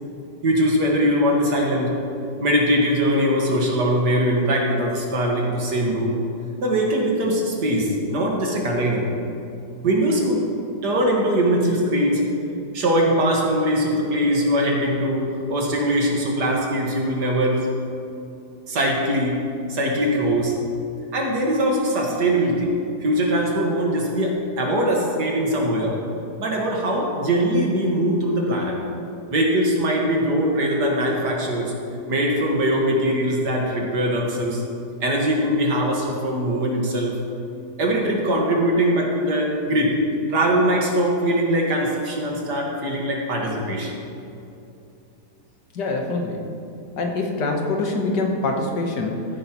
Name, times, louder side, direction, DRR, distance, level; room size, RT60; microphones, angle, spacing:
voice 1, 0.4-1.9 2.4-6.2 6.6-9.1 9.8-10.4 10.8-12.2 12.7-17.7 18.7-19.4 19.7-20.5 21.1-22.7 23.0-26.0 26.4-28.8 29.3-31.7 32.1-34.6 35.0-37.2 37.8-40.0 40.3-43.9, equal, 70° right, -1 dB, 2.2 m, -21 dB
voice 2, 45.7-46.5 47.0-49.3, left 2 dB, 80° left, 2 dB, 1.8 m, -24 dB
15.0 x 9.3 x 3.0 m, 2.7 s
omnidirectional pair, 1.8 m